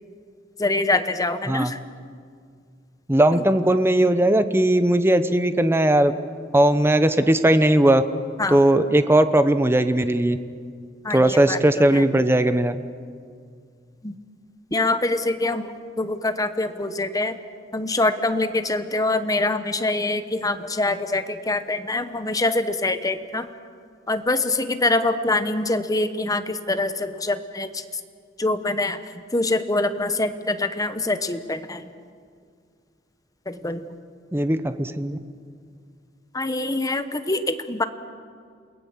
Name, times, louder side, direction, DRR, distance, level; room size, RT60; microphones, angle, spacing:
voice 1, 0.6-1.8 3.3-3.5 8.4-8.6 11.0-12.0 14.0-14.1 14.7-17.4 17.7-23.5 24.1-27.8 28.4-29.0 29.3-31.9 33.5-33.9 36.3-37.9, left 2 dB, 20° left, 10 dB, 1.0 m, -24 dB
voice 2, 3.1-6.1 6.5-8.0 8.5-10.4 11.1-12.7 34.3-35.2, right 1 dB, 15° right, 11 dB, 0.9 m, -18 dB
28.5 x 19.5 x 7.3 m, 2.1 s
head